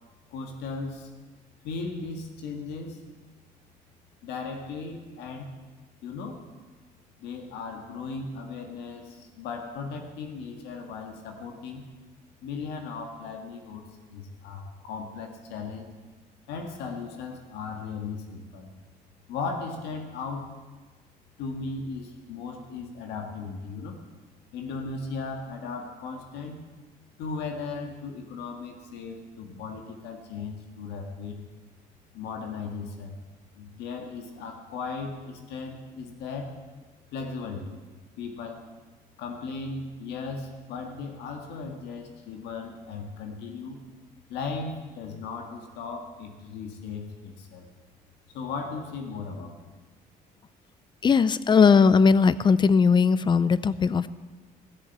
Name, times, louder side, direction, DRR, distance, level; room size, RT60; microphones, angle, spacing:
voice 1, 0.3-1.1 1.6-3.0 4.2-5.5 6.0-6.4 7.2-11.9 12.4-15.9 16.5-18.7 19.3-20.5 21.4-24.0 24.5-26.6 27.2-31.4 32.1-33.2 33.6-36.5 37.1-37.8 38.2-38.6 39.2-43.8 44.3-47.7 48.3-49.6, left 4 dB, 85° left, 4 dB, 1.8 m, -37 dB
voice 2, 51.0-54.1, left 5 dB, 25° left, 16 dB, 0.5 m, -19 dB
16.0 x 7.2 x 8.1 m, 1.3 s
cardioid pair, 110°, 17 cm